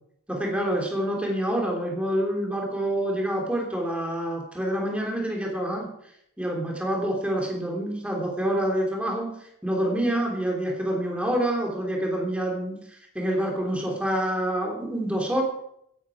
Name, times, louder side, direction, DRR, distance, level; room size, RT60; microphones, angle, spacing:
voice 1, 0.3-5.9 6.4-9.4 9.6-12.8 13.1-15.4, right 1 dB, 5° right, 0 dB, 3.1 m, -27 dB
16.0 x 11.0 x 5.1 m, 0.75 s
head